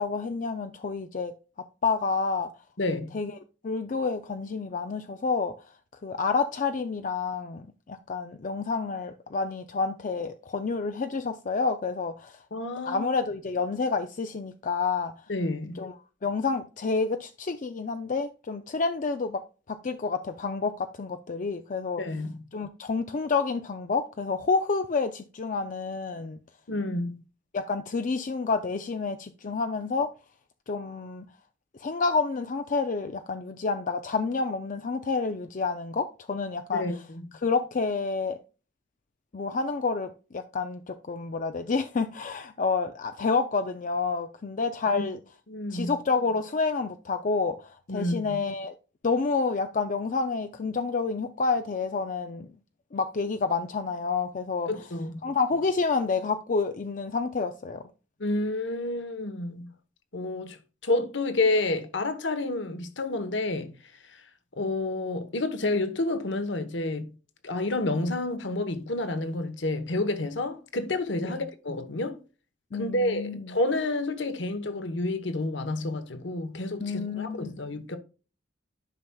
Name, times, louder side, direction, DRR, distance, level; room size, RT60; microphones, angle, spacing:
voice 1, 0.0-1.3 1.8-2.5 3.1-3.3 3.6-5.5 6.0-12.4 12.9-15.1 15.8-15.9 16.2-19.4 19.7-22.0 22.5-26.4 27.5-30.1 30.7-31.3 31.8-36.9 37.4-38.4 39.3-45.2 45.7-48.7 49.0-52.5 52.9-54.7 55.2-57.8 71.2-71.5 72.7-73.6 76.8-77.6, left 4 dB, 45° left, 0.5 m, -29 dB
voice 2, 2.8-3.2 12.5-13.1 15.3-15.9 22.0-22.3 26.7-27.2 36.7-37.3 44.9-45.0 45.5-45.9 47.9-48.4 54.7-55.3 58.2-59.7 60.1-60.6 60.8-63.7 64.1-64.2 64.5-67.1 67.4-72.2 72.8-78.0, left 2 dB, 65° left, 1.1 m, -29 dB
10.5 x 5.9 x 2.3 m
head